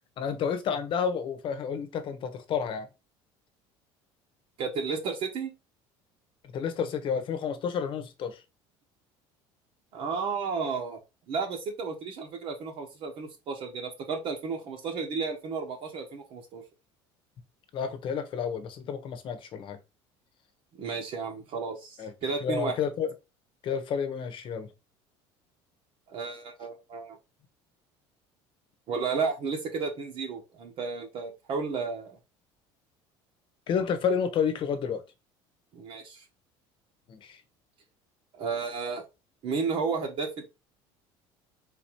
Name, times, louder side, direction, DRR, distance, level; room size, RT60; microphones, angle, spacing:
voice 1, 0.2-2.9 6.5-8.4 17.7-19.8 22.0-22.1 22.4-23.1 23.6-24.7 33.7-35.0 37.1-37.4, left 7 dB, 45° left, 1.0 m, -30 dB
voice 2, 4.6-5.5 9.9-11.0 11.3-16.6 20.8-22.8 26.1-27.2 28.9-32.2 35.7-36.2 38.3-39.0 39.4-40.5, right 5 dB, 50° right, 1.1 m, -33 dB
4.0 x 2.8 x 4.5 m
cardioid pair, 125°, 12 cm